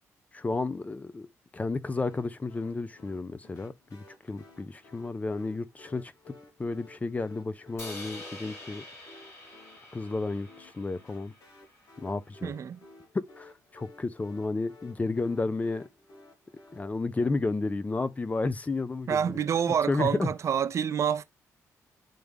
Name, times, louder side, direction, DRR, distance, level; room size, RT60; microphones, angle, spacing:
voice 1, 0.3-1.3 1.5-6.3 6.6-8.8 9.9-11.3 12.0-12.5 13.1-15.8 16.7-19.3 19.9-20.3, left 3 dB, 25° left, 0.6 m, -32 dB
sound 1, 2.0-16.8, left 2 dB, 70° left, 2.1 m, -55 dB
Crash cymbal, 7.8-12.0, left 2 dB, 45° left, 3.9 m, -46 dB
voice 2, 12.4-12.8 19.1-21.2, right 8 dB, 55° right, 0.7 m, -27 dB
9.2 x 3.6 x 3.5 m
cardioid pair, 80°, 6 cm